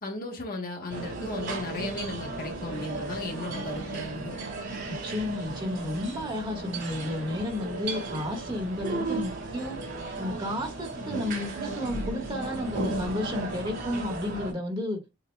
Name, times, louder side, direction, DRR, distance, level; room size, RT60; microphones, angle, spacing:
voice 1, 0.0-4.4, left 2 dB, 45° left, 1.4 m, -36 dB
sound 1, 0.9-14.5, right 3 dB, 60° right, 3.0 m, -35 dB
voice 2, 4.9-9.8 10.2-15.0, left 1 dB, 25° right, 1.5 m, -32 dB
7.4 x 2.6 x 2.2 m
head